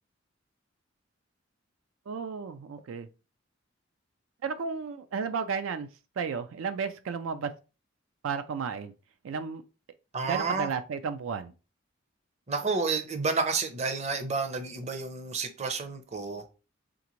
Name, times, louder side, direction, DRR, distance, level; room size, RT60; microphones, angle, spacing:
voice 1, 2.1-3.1 4.4-5.9 6.2-7.5 8.2-8.9 9.2-9.6 10.2-11.5, right 6 dB, 85° right, 0.4 m, -33 dB
voice 2, 10.1-10.7 12.5-16.4, right 4 dB, 35° right, 0.6 m, -30 dB
3.8 x 3.4 x 3.0 m
head